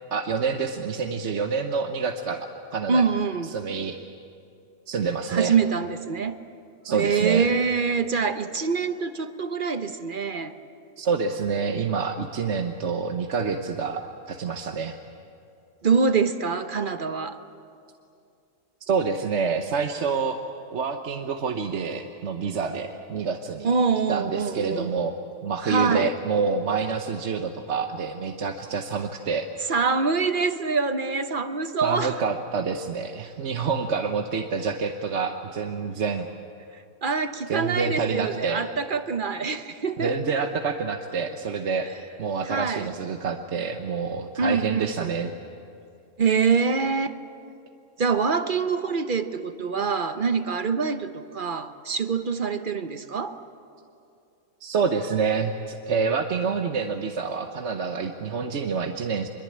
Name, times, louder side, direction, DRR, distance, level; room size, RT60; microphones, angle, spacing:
voice 1, 0.1-3.0 3.4-4.0 4.9-5.5 6.8-7.5 11.0-15.0 18.9-20.4 20.7-23.7 24.1-25.2 25.4-29.5 31.8-36.3 37.5-38.6 40.0-41.9 42.2-45.3 54.6-59.3, right 5 dB, 60° right, 5 dB, 1.2 m, -27 dB
voice 2, 2.9-3.5 5.3-6.4 6.9-10.5 15.8-17.4 23.6-24.9 25.6-26.1 29.7-32.2 37.0-40.1 42.4-42.9 44.4-45.1 46.2-47.1 48.0-53.4, right 5 dB, 40° right, 9 dB, 1.0 m, -25 dB
25.0 x 22.5 x 8.6 m, 2.5 s
omnidirectional pair, 1.4 m